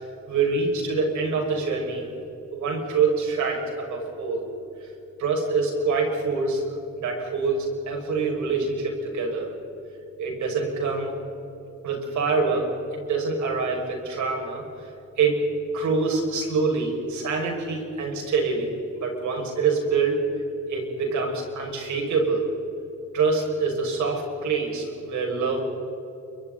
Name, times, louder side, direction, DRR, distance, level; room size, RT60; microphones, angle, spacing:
voice 1, 0.3-2.1 2.5-4.4 5.2-6.6 6.9-9.5 10.2-11.1 11.8-14.6 15.2-15.4 15.7-20.2 20.7-22.5 23.1-25.6, right 4 dB, 70° right, 0 dB, 6.4 m, -25 dB
29.0 x 24.0 x 4.2 m, 2.9 s
cardioid pair, 90°, 30 cm